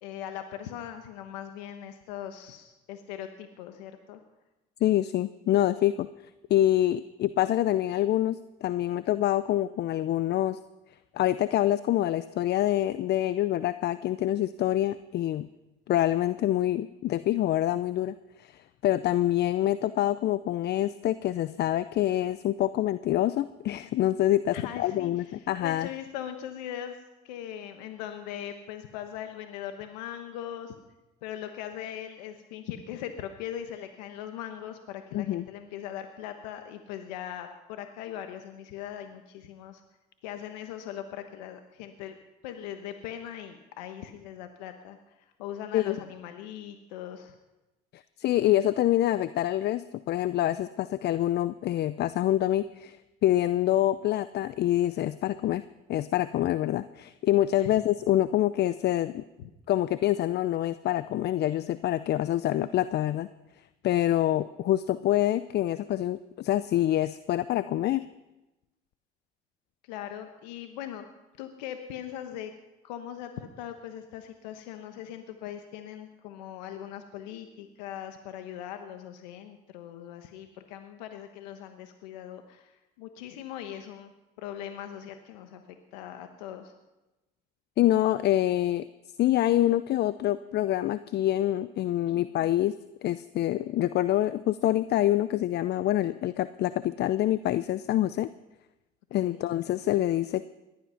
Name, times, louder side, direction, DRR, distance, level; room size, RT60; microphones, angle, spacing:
voice 1, 0.0-4.2 24.5-27.0 27.2-30.7 31.2-39.8 40.2-42.2 42.4-45.0 45.4-47.3 57.6-57.7 59.4-59.5 69.9-71.0 71.4-72.5 72.8-84.1 84.4-85.6 85.9-86.7 92.1-92.3 99.2-99.4, left 10 dB, 85° left, 7 dB, 1.1 m, -40 dB
voice 2, 4.8-6.1 6.5-10.6 11.1-15.5 15.9-25.9 35.1-35.5 45.7-46.0 47.9-53.0 53.2-55.6 55.9-59.2 59.7-63.3 63.8-68.0 87.8-88.9 89.2-92.7 93.0-98.3 99.1-100.4, left 13 dB, 50° left, 15 dB, 0.5 m, -26 dB
18.5 x 12.0 x 5.7 m, 1.0 s
hypercardioid pair, 70°, 21 cm